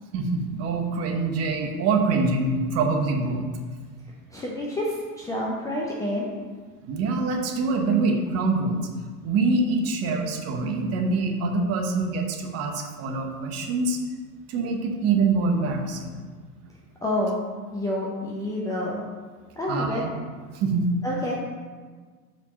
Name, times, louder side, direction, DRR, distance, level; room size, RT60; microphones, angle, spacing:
voice 1, 0.1-3.4 6.9-8.8 9.2-14.0 14.5-16.2 19.7-20.1 20.5-20.9, right 3 dB, 30° right, 3 dB, 0.9 m, -25 dB
voice 2, 4.3-6.3 17.0-17.4 17.7-19.0 19.6-20.0 21.0-21.3, left 1 dB, 5° left, -5 dB, 0.5 m, -28 dB
5.0 x 3.5 x 5.7 m, 1.5 s
figure-of-eight pair, 90°, 48 cm